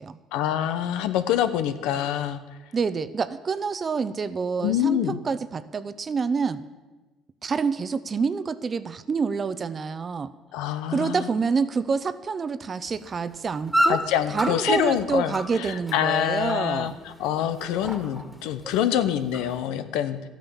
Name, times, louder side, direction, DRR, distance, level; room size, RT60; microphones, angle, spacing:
voice 1, 0.3-2.4 4.6-5.2 10.5-11.3 13.9-20.3, left 10 dB, 80° left, 10 dB, 0.9 m, -26 dB
voice 2, 2.7-6.6 7.4-10.3 10.9-14.0 14.3-17.0, right 5 dB, 35° right, 14 dB, 0.8 m, -27 dB
sound 1, 12.9-19.7, equal, 5° right, 1.9 m, -32 dB
13.0 x 9.1 x 7.1 m, 1.2 s
supercardioid pair, 85°, 0 cm